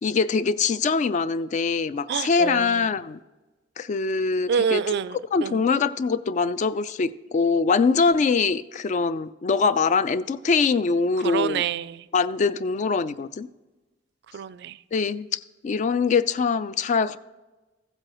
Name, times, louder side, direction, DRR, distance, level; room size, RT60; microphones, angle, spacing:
voice 1, 0.0-3.2 3.8-4.8 5.3-11.6 12.1-13.5 14.9-17.2, left 5 dB, 40° left, 15 dB, 0.3 m, -23 dB
voice 2, 2.1-2.8 4.5-5.6 11.2-12.1 14.3-14.8, right 7 dB, 60° right, 17 dB, 0.3 m, -27 dB
15.0 x 7.7 x 3.0 m, 1.2 s
head